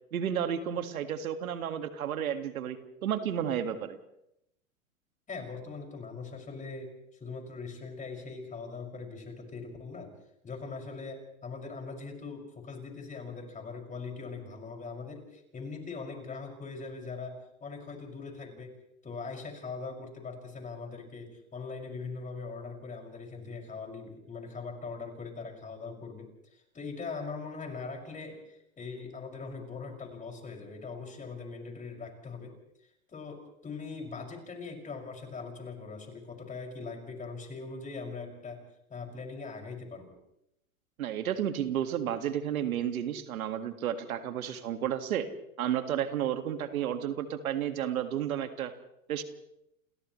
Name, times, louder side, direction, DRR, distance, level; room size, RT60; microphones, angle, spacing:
voice 1, 0.1-4.0 41.0-45.3 45.6-48.7 49.1-49.2, right 9 dB, 80° right, 8 dB, 2.0 m, -32 dB
voice 2, 5.3-6.9 7.2-10.1 10.4-18.8 19.0-32.5 33.1-38.6 38.9-40.2, left 4 dB, 20° left, 1 dB, 6.1 m, -41 dB
29.5 x 28.0 x 3.2 m, 0.81 s
hypercardioid pair, 115°, 42 cm